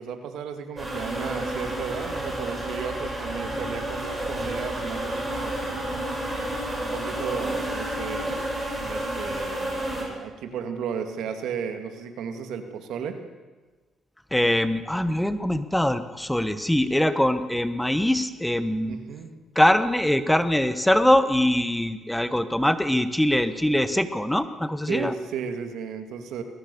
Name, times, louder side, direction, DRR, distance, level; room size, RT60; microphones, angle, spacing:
voice 1, 0.0-6.0 6.8-8.4 8.8-13.2 18.9-19.3 24.9-26.4, right 7 dB, 80° right, 7 dB, 2.3 m, -34 dB
sound 1, 0.8-10.0, right 1 dB, 15° right, 7.7 m, -30 dB
voice 2, 14.3-19.0 19.5-25.1, left 1 dB, 5° left, 12 dB, 1.2 m, -23 dB
21.0 x 18.5 x 6.9 m, 1.3 s
cardioid pair, 90°, 0 cm